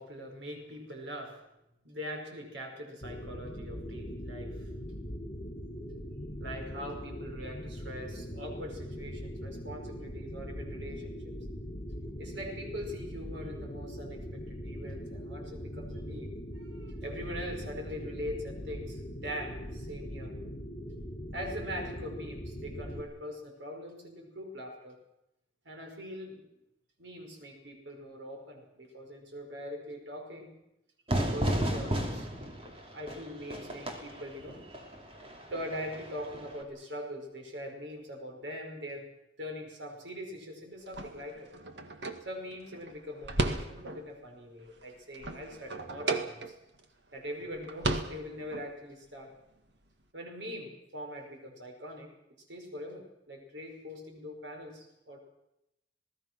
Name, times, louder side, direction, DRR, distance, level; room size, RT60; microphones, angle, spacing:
voice 1, 0.0-1.5 1.8-4.7 6.4-11.3 12.2-20.3 21.3-25.0 25.6-26.4 27.0-30.5 31.1-32.5 32.9-34.6 35.5-39.1 39.4-41.5 42.2-46.6 47.1-49.3 50.1-52.1 52.5-55.2, equal, 90° right, 3 dB, 5.5 m, -42 dB
sound 1, 3.0-23.0, equal, 50° left, 3.5 m, -41 dB
Fire / Fireworks, 31.1-36.6, right 1 dB, 30° right, 3.0 m, -34 dB
sound 2, 40.9-44.2 44.6-46.8 47.2-47.3 47.5-48.7, right 2 dB, 70° right, 1.9 m, -35 dB
27.5 x 18.5 x 6.2 m, 0.88 s
head